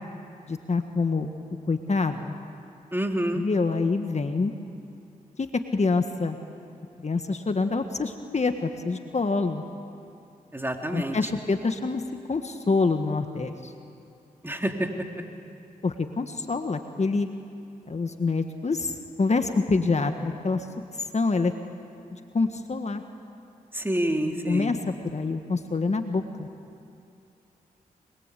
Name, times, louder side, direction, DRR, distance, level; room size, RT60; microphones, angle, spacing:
voice 1, 0.5-1.3 1.7-2.4 3.3-4.5 5.4-5.5 5.7-6.4 7.0-9.6 10.9-12.0 12.3-13.7 15.8-17.3 17.9-20.7 21.1-21.5 22.1-23.0 24.5-24.8 25.0-26.5, left 3 dB, 45° left, 6 dB, 1.7 m, -26 dB
voice 2, 2.9-3.4 10.5-11.3 14.4-14.9 23.7-24.7, right 1 dB, 15° right, 2 dB, 3.6 m, -28 dB
25.0 x 22.5 x 8.5 m, 2.7 s
cardioid pair, 45°, 16 cm